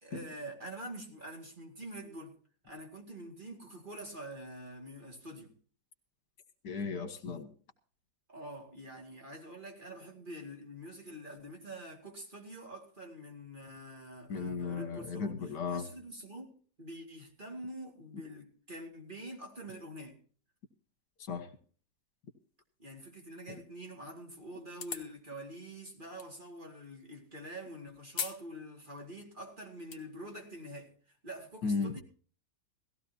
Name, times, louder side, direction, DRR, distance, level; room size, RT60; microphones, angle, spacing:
voice 1, 0.0-2.3 2.6-5.5 8.3-15.3 15.7-16.5 16.8-20.2 22.8-32.0, right 1 dB, 30° right, 1 dB, 2.4 m, -46 dB
voice 2, 6.6-7.5 14.3-15.8 21.2-21.5 23.5-23.6 31.6-32.0, left 5 dB, 75° left, 8 dB, 2.0 m, -35 dB
sound 1, 24.7-25.2 26.2-26.3 28.1-28.4 28.8-28.9 29.6-30.0, left 6 dB, 55° left, 1.6 m, -38 dB
17.5 x 15.5 x 2.8 m, 0.43 s
omnidirectional pair, 1.8 m